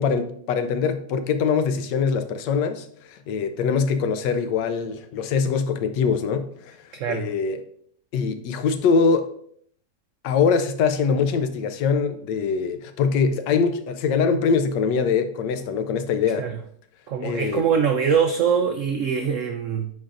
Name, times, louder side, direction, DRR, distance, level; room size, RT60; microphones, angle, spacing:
voice 1, 0.0-6.8 7.1-7.6 8.1-9.3 10.2-16.5 17.2-17.6, left 5 dB, 80° left, 1.3 m, -23 dB
voice 2, 6.9-7.3 16.4-16.6 17.1-19.9, right 7 dB, 85° right, 0.6 m, -23 dB
9.4 x 4.2 x 2.5 m
omnidirectional pair, 1.9 m